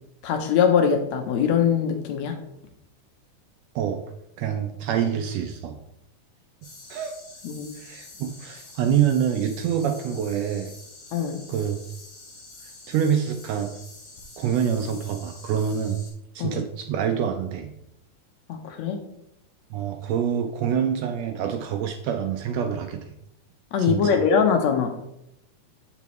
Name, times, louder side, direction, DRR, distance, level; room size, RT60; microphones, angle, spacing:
voice 1, 0.2-2.4 7.4-7.7 11.1-11.4 16.4-16.6 18.5-19.0 23.7-25.0, left 7 dB, 75° left, 5 dB, 1.9 m, -22 dB
voice 2, 4.4-5.8 6.9-7.2 7.7-10.7 11.5-11.8 12.6-13.7 14.4-16.0 16.3-17.7 19.7-23.1 23.8-24.2, right 8 dB, 80° right, 6 dB, 1.6 m, -26 dB
sound 1, 6.6-16.1, left 2 dB, 50° left, 3.7 m, -46 dB
7.2 x 7.0 x 3.1 m, 0.80 s
omnidirectional pair, 3.4 m